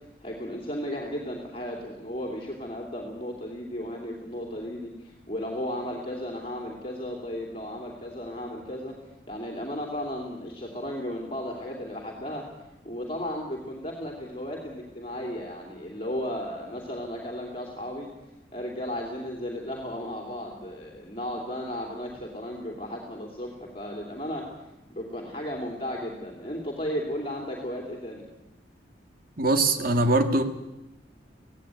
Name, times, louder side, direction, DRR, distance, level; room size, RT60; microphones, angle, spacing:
voice 1, 0.2-9.0 9.3-12.5 12.8-18.1 18.5-24.5 24.9-28.2, left 1 dB, 30° left, 0 dB, 3.0 m, -34 dB
voice 2, 29.4-30.4, right 2 dB, 55° right, 7 dB, 1.9 m, -22 dB
17.0 x 16.5 x 9.5 m, 0.99 s
head